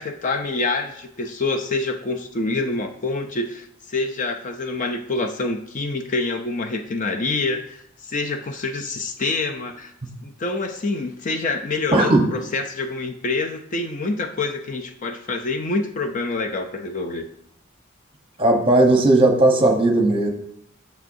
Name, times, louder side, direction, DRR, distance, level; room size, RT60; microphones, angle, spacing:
voice 1, 0.0-9.9 10.2-17.3, left 3 dB, 40° left, 5 dB, 0.5 m, -26 dB
voice 2, 11.9-12.3 18.4-20.3, right 2 dB, 25° right, 3 dB, 1.0 m, -16 dB
9.0 x 6.5 x 2.7 m, 0.71 s
head